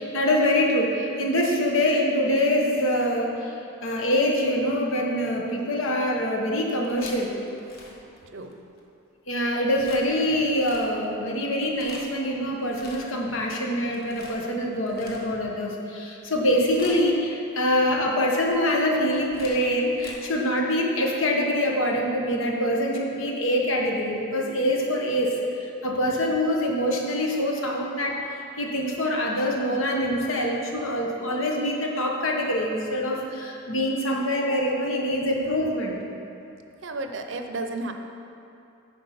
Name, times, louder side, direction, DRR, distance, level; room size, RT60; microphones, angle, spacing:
voice 1, 0.0-3.5 3.8-7.3 9.3-25.4 25.8-28.2 28.6-36.0, equal, 70° left, 0 dB, 1.2 m, -24 dB
sound 1, 6.8-8.8 9.8-10.0 10.5-11.1 11.6-12.2 12.6-13.3 13.6-15.6 16.2-16.4 16.7-17.3 18.1-20.1, left 2 dB, 45° left, 1.2 m, -46 dB
voice 2, 36.8-37.9, right 2 dB, 60° right, 5 dB, 0.6 m, -32 dB
9.9 x 4.7 x 5.6 m, 2.7 s
head